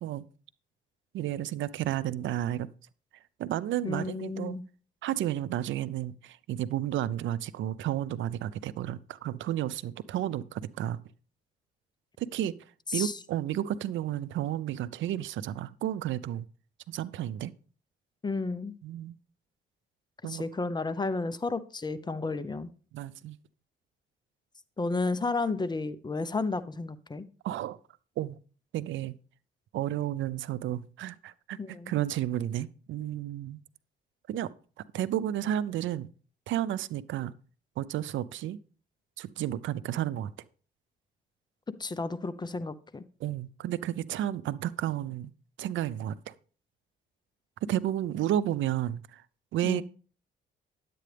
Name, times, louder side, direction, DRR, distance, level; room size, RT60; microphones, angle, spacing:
voice 1, 1.1-2.7 3.4-4.6 5.0-11.0 12.2-12.5 12.9-16.5 16.9-17.5 18.8-19.2 20.2-20.4 22.9-23.4 27.4-27.8 28.2-28.4 28.7-29.1 29.7-33.6 34.3-34.5 34.9-36.1 36.5-37.3 37.8-38.6 39.2-40.3 43.2-45.3 45.6-46.3 47.6-49.2 49.5-49.8, right 12 dB, 75° right, 0.5 m, -32 dB
voice 2, 3.8-4.6 12.9-13.1 18.2-18.7 20.3-22.7 24.8-27.3 31.6-31.9 41.8-43.0 49.6-49.8, left 3 dB, 20° left, 0.7 m, -32 dB
10.5 x 8.5 x 3.4 m
cardioid pair, 90°, 20 cm